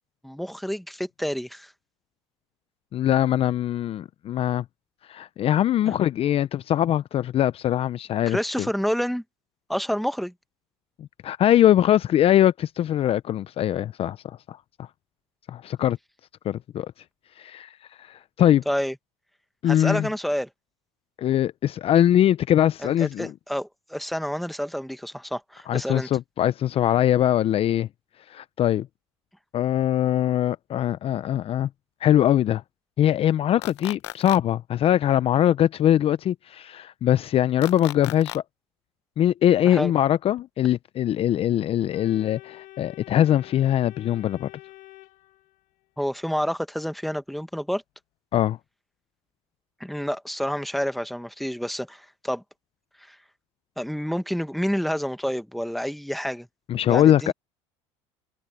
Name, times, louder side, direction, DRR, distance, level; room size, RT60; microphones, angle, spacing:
voice 1, 0.2-1.7 5.9-6.0 8.3-9.2 9.7-10.3 18.6-18.9 19.6-20.5 22.8-26.1 39.6-39.9 46.0-47.8 49.8-52.4 53.1-53.2 53.8-56.5 56.9-57.3, equal, ahead, 1.6 m, -29 dB
voice 2, 2.9-4.6 5.1-8.7 11.0-14.9 15.5-16.0 16.4-16.9 17.4-17.7 18.0-18.6 19.6-20.1 21.2-23.3 25.7-27.9 28.3-28.9 29.5-31.7 32.0-32.6 33.0-38.4 39.2-44.5 48.3-48.6 56.7-57.3, left 11 dB, 45° left, 0.6 m, -22 dB
sound 1, 33.6-34.4 37.6-38.4, left 17 dB, 90° left, 1.0 m, -35 dB
Organ, 41.9-45.8, left 18 dB, 65° left, 1.6 m, -47 dB
supercardioid pair, 90°, 14 cm